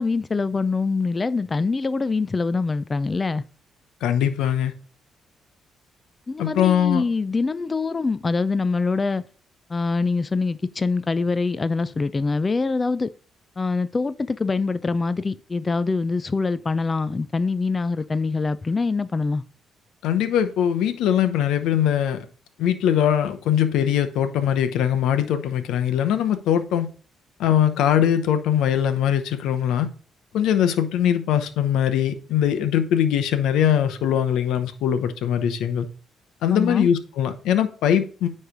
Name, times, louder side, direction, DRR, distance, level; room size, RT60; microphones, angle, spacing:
voice 1, 0.0-3.4 6.3-9.2 9.7-13.1 13.6-19.4 36.5-36.9, left 4 dB, 30° left, 0.4 m, -24 dB
voice 2, 4.0-4.7 6.4-7.0 20.0-22.3 22.6-26.9 27.4-29.9 30.3-35.9 36.4-38.3, left 9 dB, 85° left, 0.8 m, -21 dB
9.6 x 3.3 x 5.1 m
cardioid pair, 90°, 0 cm